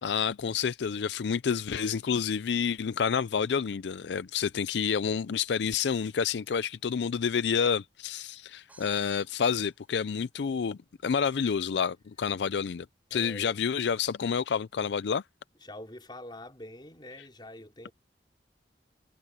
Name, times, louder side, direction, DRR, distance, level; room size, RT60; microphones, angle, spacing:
voice 1, 0.0-12.9 13.1-15.2, left 6 dB, 75° left, 0.4 m, -29 dB
sound 1, 8.7-10.7, right 2 dB, 10° right, 3.3 m, -60 dB
voice 2, 13.1-13.6 15.5-17.9, left 1 dB, 25° left, 4.8 m, -45 dB
head